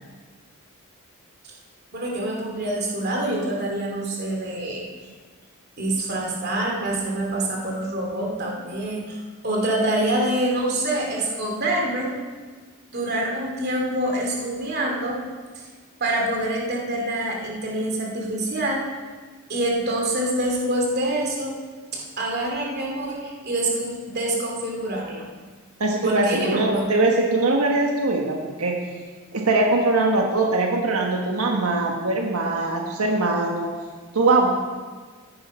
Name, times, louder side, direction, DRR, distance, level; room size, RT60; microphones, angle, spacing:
voice 1, 1.9-4.9 5.8-12.1 12.9-15.2 15.5-15.6 16.0-18.9 19.5-21.6 21.9-25.3 26.0-26.9, right 1 dB, 45° right, -1 dB, 2.9 m, -26 dB
voice 2, 25.8-28.8 29.3-33.7 34.1-34.5, right 2 dB, 90° right, 0 dB, 1.4 m, -21 dB
13.5 x 10.0 x 5.6 m, 1.5 s
head